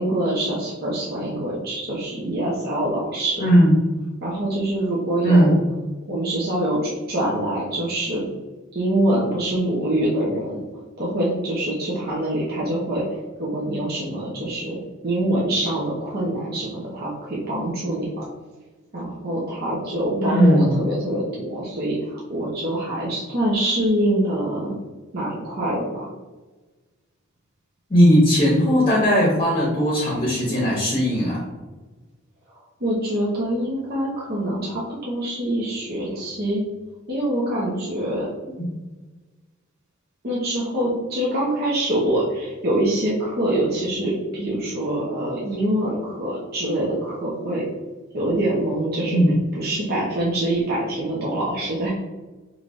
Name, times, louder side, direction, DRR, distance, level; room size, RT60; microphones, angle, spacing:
voice 1, 0.0-3.4 4.2-5.6 6.1-8.2 8.7-10.6 11.0-18.2 18.9-24.7 25.1-26.1 32.8-36.6 37.1-38.3 40.2-47.7 48.1-49.2 49.5-51.9, right 1 dB, 45° right, -6 dB, 0.8 m, -25 dB
voice 2, 3.4-3.7 5.2-5.6 20.2-20.7 27.9-31.4 49.1-49.3, equal, 25° left, -4 dB, 0.9 m, -17 dB
5.1 x 3.1 x 2.6 m, 1.2 s
head